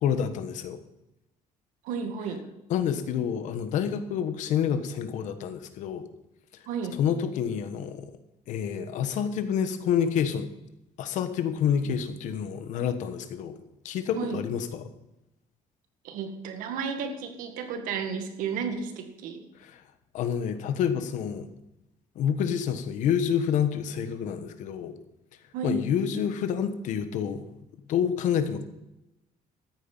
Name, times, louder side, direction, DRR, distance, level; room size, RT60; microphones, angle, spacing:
voice 1, 0.0-0.8 2.7-6.1 7.0-8.1 8.5-10.5 11.0-13.6 13.8-14.9 19.6-19.8 20.1-21.5 22.1-24.9 25.6-27.5 27.9-28.6, left 8 dB, 65° left, 10 dB, 1.3 m, -28 dB
voice 2, 1.8-2.4 6.7-7.0 14.1-14.4 16.0-19.4 25.5-25.8, right 5 dB, 85° right, 7 dB, 1.9 m, -32 dB
13.5 x 9.3 x 5.5 m, 0.92 s
cardioid pair, 165°, 13 cm